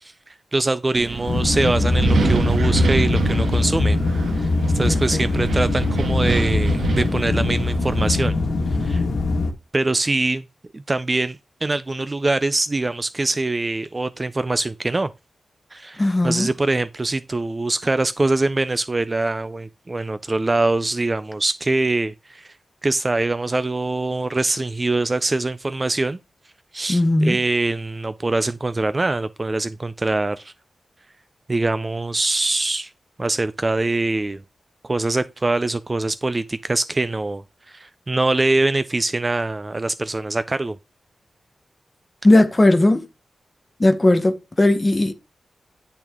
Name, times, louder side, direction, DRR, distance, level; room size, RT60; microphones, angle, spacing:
voice 1, 0.0-4.0 4.3-8.3 8.8-9.0 9.7-10.5 10.7-15.1 15.7-22.5 22.8-26.2 26.7-30.5 31.5-32.9 33.2-34.4 34.8-40.8, right 2 dB, 20° right, 0.4 m, -23 dB
Wind, 0.9-8.3, right 5 dB, 90° right, 1.4 m, -26 dB
sound 1, 1.3-9.5, left 3 dB, 85° left, 1.7 m, -22 dB
voice 2, 4.9-5.2 16.0-16.5 26.9-27.4 42.2-43.0 43.8-45.1, left 1 dB, 20° left, 1.0 m, -17 dB
10.0 x 6.1 x 3.6 m
wide cardioid pair, 170°, 0 cm